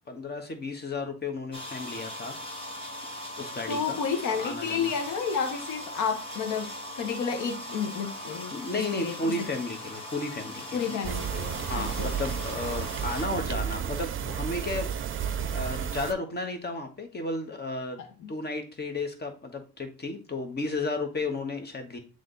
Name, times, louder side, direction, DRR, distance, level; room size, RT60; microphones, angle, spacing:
voice 1, 0.1-2.8 3.4-4.0 4.3-4.9 8.5-10.9 11.6-18.0 18.3-22.0, left 2 dB, 35° left, 1.5 m, -33 dB
sound 1, 1.5-13.3, left 1 dB, 20° left, 1.8 m, -40 dB
voice 2, 3.7-9.3 10.7-12.1, left 6 dB, 80° left, 1.2 m, -31 dB
sound 2, 11.0-16.1, right 8 dB, 45° right, 0.5 m, -32 dB
7.7 x 3.5 x 3.9 m
cardioid pair, 90°, 30 cm